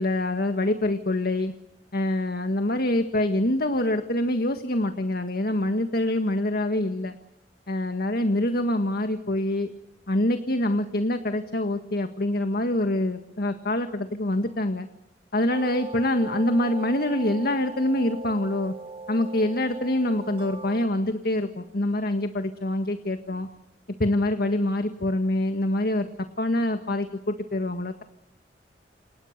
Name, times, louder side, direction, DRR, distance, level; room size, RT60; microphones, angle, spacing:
voice 1, 0.0-1.5 1.9-7.2 7.7-9.7 10.1-14.9 15.3-18.7 19.1-23.5 24.0-26.1 26.4-28.0, left 1 dB, 60° left, 7 dB, 1.7 m, -25 dB
sound 1, 15.5-20.9, right 3 dB, 30° right, 2.3 m, -39 dB
29.0 x 28.5 x 6.7 m, 0.78 s
head